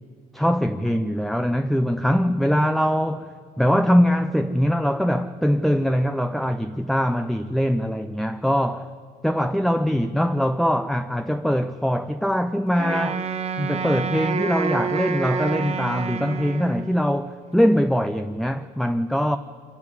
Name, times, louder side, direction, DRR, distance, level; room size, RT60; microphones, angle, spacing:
voice 1, 0.3-3.3 3.6-8.9 9.2-13.3 13.6-19.4, equal, ahead, 0.6 m, -22 dB
Wind instrument woodwind instrument, 12.8-17.2, right 6 dB, 40° right, 1.4 m, -28 dB
25.5 x 12.0 x 9.7 m
cardioid pair, 110°, 17 cm